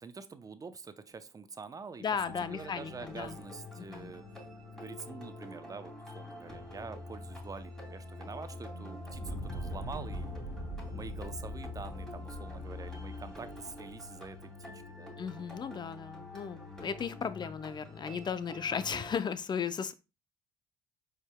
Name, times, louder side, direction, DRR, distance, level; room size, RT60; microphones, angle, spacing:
voice 1, 0.0-2.0 2.4-4.2 4.8-10.4 10.9-15.1, right 4 dB, 25° right, 0.6 m, -46 dB
voice 2, 2.0-3.4 3.8-4.1 15.2-19.9, left 7 dB, 35° left, 0.5 m, -36 dB
sound 1, 2.2-19.1, left 2 dB, 5° left, 2.7 m, -45 dB
Fire, 9.0-14.2, right 1 dB, 85° left, 2.0 m, -43 dB
4.9 x 4.4 x 2.2 m
hypercardioid pair, 70°, 13 cm